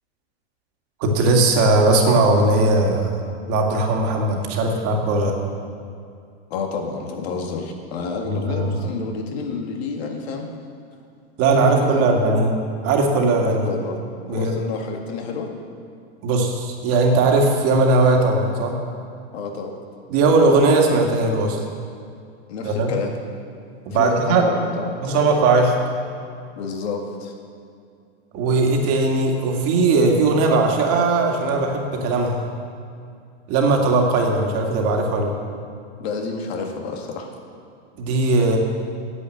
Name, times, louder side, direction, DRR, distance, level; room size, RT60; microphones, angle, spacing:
voice 1, 1.0-3.2 3.5-5.3 8.2-8.8 11.4-12.5 12.8-13.6 14.3-14.5 16.2-18.7 20.1-21.6 22.6-22.9 23.9-24.4 25.0-25.7 28.3-32.4 33.5-35.3 38.0-38.6, right 3 dB, 45° right, 1 dB, 2.2 m, -18 dB
voice 2, 6.5-10.5 11.5-12.4 13.4-14.0 14.3-15.5 19.3-19.7 22.5-23.1 23.9-25.5 26.6-27.3 36.0-37.3, left 4 dB, 65° left, 2 dB, 1.9 m, -30 dB
9.9 x 7.8 x 7.9 m, 2.4 s
hypercardioid pair, 120°, 33 cm